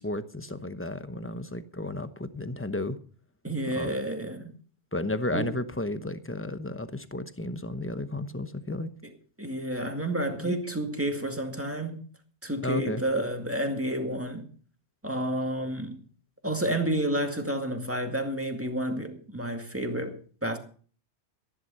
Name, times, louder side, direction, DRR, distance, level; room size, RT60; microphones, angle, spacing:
voice 1, 0.0-3.0 3.7-3.9 4.9-8.9 10.4-10.5 12.6-13.0, left 1 dB, 10° left, 0.9 m, -33 dB
voice 2, 3.4-4.5 5.3-5.6 9.0-9.1 9.4-12.1 12.4-14.5 15.0-16.0 16.4-20.6, right 1 dB, 10° right, 2.1 m, -30 dB
14.0 x 11.5 x 5.6 m
omnidirectional pair, 1.2 m